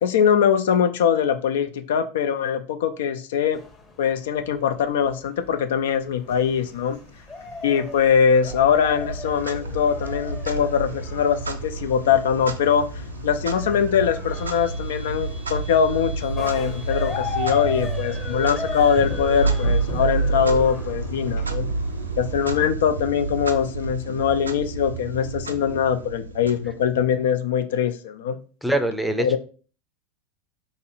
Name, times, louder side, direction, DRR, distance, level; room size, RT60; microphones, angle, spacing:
voice 1, 0.0-3.6 4.0-7.0 7.6-12.9 13.2-21.7 22.2-28.4 29.2-29.4, left 7 dB, 70° left, 9 dB, 0.4 m, -22 dB
sound 1, 3.5-22.6, left 3 dB, 20° left, 0.9 m, -37 dB
sound 2, 6.1-22.5, equal, 85° left, 1.4 m, -43 dB
Clock, 8.4-27.2, right 3 dB, 90° right, 0.4 m, -30 dB
voice 2, 28.6-29.4, right 1 dB, ahead, 8 dB, 0.5 m, -23 dB
3.0 x 2.6 x 4.0 m, 0.38 s
hypercardioid pair, 85°, 0 cm